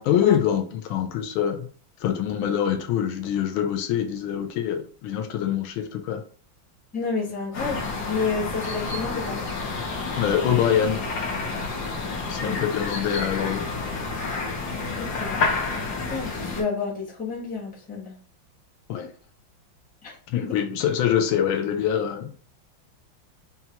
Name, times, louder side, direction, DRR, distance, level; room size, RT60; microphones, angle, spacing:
voice 1, 0.0-1.7 2.0-6.2 10.2-11.0 12.3-13.7 16.2-16.3 18.9-19.1 20.3-22.4, left 9 dB, 80° left, 7 dB, 1.4 m, -24 dB
voice 2, 6.9-9.5 12.4-12.7 14.9-15.4 16.1-18.2 20.0-20.5, left 5 dB, 5° left, -5 dB, 0.7 m, -30 dB
sound 1, 7.5-16.6, left 3 dB, 60° left, 1.3 m, -29 dB
5.6 x 2.4 x 2.8 m, 0.43 s
omnidirectional pair, 2.3 m